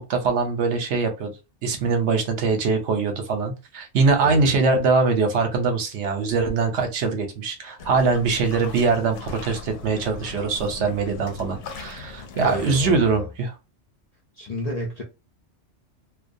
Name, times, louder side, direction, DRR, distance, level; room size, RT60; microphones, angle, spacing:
voice 1, 0.0-1.3 1.6-13.5, right 4 dB, 70° right, 0.9 m, -22 dB
voice 2, 4.2-4.5 12.4-13.3 14.3-15.0, left 1 dB, 50° left, 0.4 m, -31 dB
sound 1, 7.8-13.0, left 4 dB, 70° left, 0.8 m, -39 dB
2.3 x 2.2 x 2.6 m
omnidirectional pair, 1.2 m